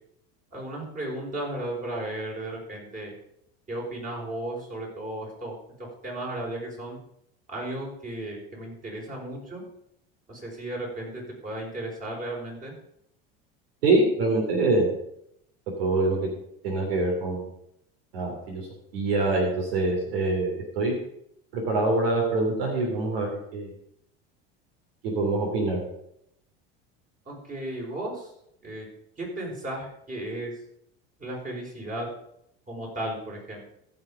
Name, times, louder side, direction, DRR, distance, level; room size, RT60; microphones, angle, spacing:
voice 1, 0.5-3.1 3.7-7.0 7.5-9.6 10.3-12.7 27.2-28.3 28.6-28.9 29.2-30.6 31.2-32.1 32.7-33.6, right 1 dB, 25° right, -2 dB, 4.9 m, -35 dB
voice 2, 13.8-14.9 15.8-16.3 16.6-17.5 18.1-18.7 18.9-21.0 21.5-23.7 25.0-25.8, right 2 dB, 90° right, -1 dB, 3.0 m, -25 dB
14.5 x 5.7 x 5.0 m, 0.74 s
supercardioid pair, 105°, 29 cm